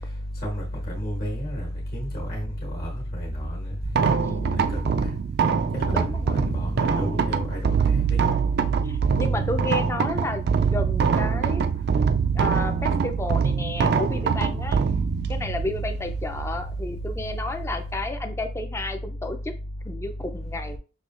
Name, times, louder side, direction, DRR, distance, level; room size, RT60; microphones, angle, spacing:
voice 1, 0.4-1.7 1.9-2.5 2.8-3.6 5.0-5.1 5.7-8.0, equal, 50° left, 1.4 m, -30 dB
sound 1, 3.8-18.1, right 6 dB, 55° right, 0.3 m, -24 dB
voice 2, 4.2-4.8 5.9-6.5 8.8-10.4 10.7-11.6 12.3-14.8 15.3-19.5 19.8-20.8, left 2 dB, 15° left, 0.4 m, -32 dB
6.4 x 2.8 x 2.5 m
head